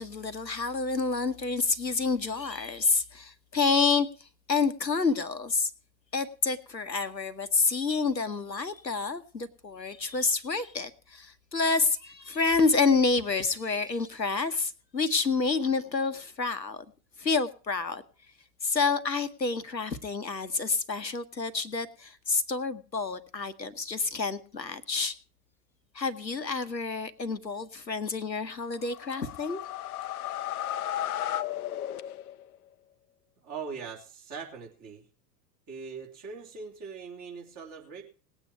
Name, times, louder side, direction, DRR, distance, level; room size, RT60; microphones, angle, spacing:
voice 1, 0.0-5.7 6.1-16.8 17.2-18.0 18.6-25.1 25.9-29.6, left 4 dB, 90° left, 12 dB, 1.2 m, -28 dB
sound 1, 28.8-32.5, left 11 dB, 60° left, 0.7 m, -34 dB
voice 2, 33.4-35.0 35.7-38.0, right 5 dB, 35° right, 0 dB, 3.7 m, -41 dB
19.5 x 8.8 x 4.6 m, 0.37 s
figure-of-eight pair, 90°, 50 cm